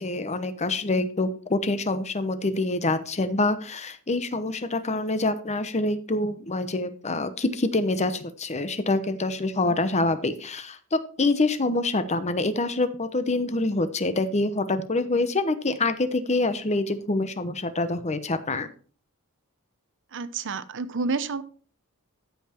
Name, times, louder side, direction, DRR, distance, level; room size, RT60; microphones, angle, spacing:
voice 1, 0.0-18.7, left 2 dB, 30° left, 11 dB, 0.9 m, -26 dB
voice 2, 20.1-21.4, right 4 dB, 55° right, 14 dB, 0.8 m, -29 dB
13.5 x 5.7 x 4.4 m, 0.41 s
head